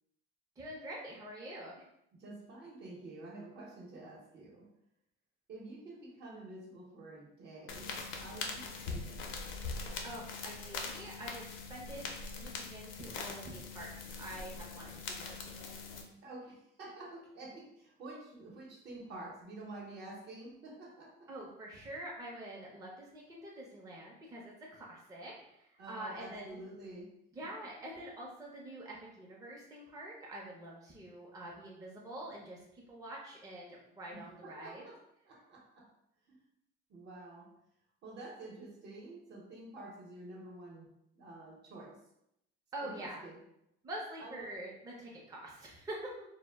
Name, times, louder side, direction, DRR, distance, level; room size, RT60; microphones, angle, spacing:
voice 1, 0.6-1.9 10.0-12.1 12.4-15.7 21.3-26.6 27.3-34.8 42.7-43.2 43.8-46.1, right 1 dB, 15° right, -3 dB, 0.5 m, -46 dB
voice 2, 2.2-4.7 5.5-9.2 16.2-21.3 25.8-27.1 34.1-35.9 36.3-36.4 36.9-37.5 38.0-40.9 41.2-42.0 42.8-43.4 44.2-44.6, right 2 dB, 55° right, -1 dB, 0.8 m, -49 dB
sound 1, 7.7-16.0, left 4 dB, 70° left, 0.5 m, -42 dB
2.1 x 2.0 x 3.3 m, 0.79 s
cardioid pair, 115°, 21 cm